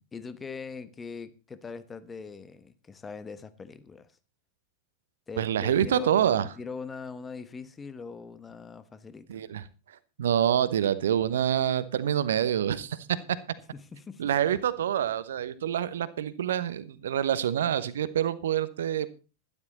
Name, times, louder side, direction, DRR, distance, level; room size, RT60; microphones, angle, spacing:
voice 1, 0.1-4.1 5.3-9.4 13.7-14.2, left 5 dB, 15° left, 1.2 m, -41 dB
voice 2, 5.4-6.4 9.3-9.6 10.2-13.0 14.2-19.1, right 10 dB, 60° right, 1.0 m, -26 dB
12.0 x 12.0 x 4.2 m
figure-of-eight pair, 90°, 0 cm